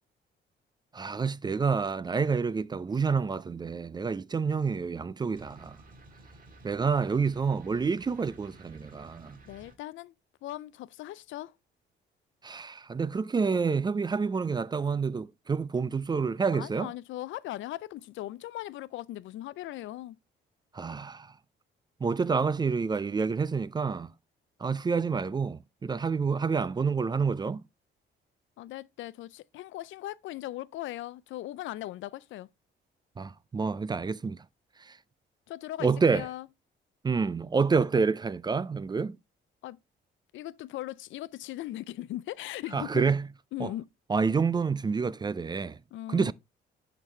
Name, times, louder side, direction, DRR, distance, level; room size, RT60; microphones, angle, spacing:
voice 1, 0.9-5.8 6.6-9.4 12.4-16.9 20.7-21.3 22.0-24.1 24.6-27.6 33.2-34.4 34.8-35.0 35.8-36.3 37.0-39.2 42.7-43.3 43.6-43.7 44.1-45.8 46.1-46.3, right 5 dB, 20° right, 0.3 m, -28 dB
sound 1, 5.4-9.8, right 2 dB, 45° right, 1.7 m, -53 dB
voice 2, 9.5-10.1 10.4-11.5 16.5-20.2 28.6-32.5 35.5-36.5 39.6-39.8 40.3-43.0 43.5-43.8 45.9-46.3, left 14 dB, 75° left, 0.4 m, -39 dB
10.5 x 4.0 x 3.2 m
cardioid pair, 90°, 20 cm